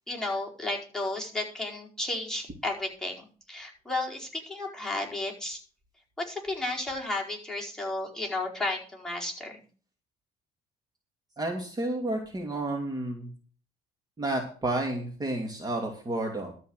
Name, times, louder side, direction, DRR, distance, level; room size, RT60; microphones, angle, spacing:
voice 1, 0.1-5.6 6.2-9.6, left 2 dB, 5° left, -2 dB, 4.7 m, -33 dB
voice 2, 11.4-13.3 14.2-16.5, right 2 dB, 25° right, 2 dB, 2.6 m, -31 dB
13.0 x 5.6 x 7.9 m, 0.39 s
cardioid pair, 110°, 17 cm